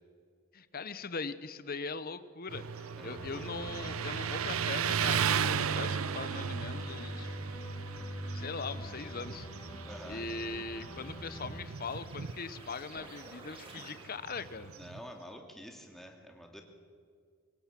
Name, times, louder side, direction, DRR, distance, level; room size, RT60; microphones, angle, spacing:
voice 1, 0.5-7.3 8.3-9.5 10.1-14.7, left 4 dB, 45° left, 13 dB, 0.9 m, -40 dB
Motorcycle, 2.5-15.1, right 7 dB, 80° right, 0.7 m, -36 dB
voice 2, 3.0-3.5 9.8-10.2 14.7-16.6, equal, ahead, 2 dB, 2.4 m, -48 dB
sound 1, 3.2-11.6, equal, 25° left, 3.6 m, -44 dB
sound 2, 10.1-14.4, right 2 dB, 25° right, 3.7 m, -54 dB
24.0 x 18.0 x 7.5 m, 2.1 s
head